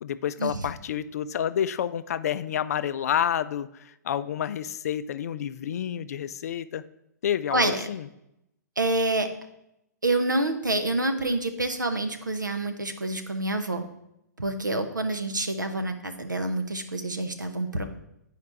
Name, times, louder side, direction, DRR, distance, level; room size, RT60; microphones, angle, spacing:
voice 1, 0.0-6.8 7.2-8.1, left 9 dB, 55° left, 14 dB, 0.4 m, -29 dB
voice 2, 7.5-7.9 8.8-9.3 10.0-13.8 14.4-17.8, right 2 dB, 90° right, 6 dB, 0.8 m, -27 dB
9.3 x 4.8 x 3.4 m, 0.82 s
figure-of-eight pair, 115°, 10 cm